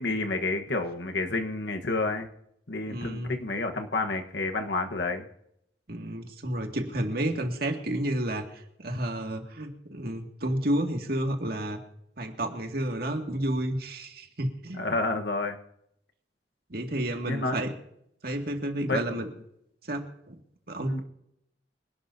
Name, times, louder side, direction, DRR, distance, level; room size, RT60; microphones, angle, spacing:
voice 1, 0.0-2.3 2.7-5.2 14.8-15.6 17.3-17.6 18.8-19.0 20.8-21.0, left 3 dB, 75° left, 5 dB, 1.3 m, -29 dB
voice 2, 2.9-3.4 5.9-11.8 12.2-15.0 16.7-17.8 18.2-19.3 19.9-20.4 20.7-21.0, right 1 dB, 60° right, 3 dB, 2.2 m, -31 dB
25.5 x 12.0 x 2.8 m, 0.76 s
head